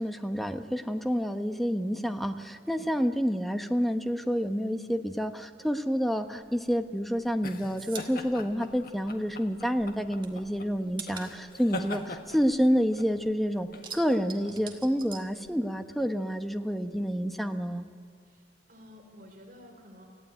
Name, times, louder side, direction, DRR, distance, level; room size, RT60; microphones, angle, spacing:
voice 1, 0.0-17.9, equal, ahead, 7 dB, 0.9 m, -29 dB
voice 2, 2.6-3.0 18.3-18.4 18.7-20.1, left 1 dB, 50° right, 3 dB, 3.7 m, -51 dB
sound 1, 6.4-15.6, left 2 dB, 55° left, 1.6 m, -43 dB
sound 2, 7.1-9.5 9.8-13.1 13.4-16.0 16.3-17.4, right 5 dB, 30° right, 1.9 m, -45 dB
29.0 x 15.0 x 9.1 m, 2.2 s
head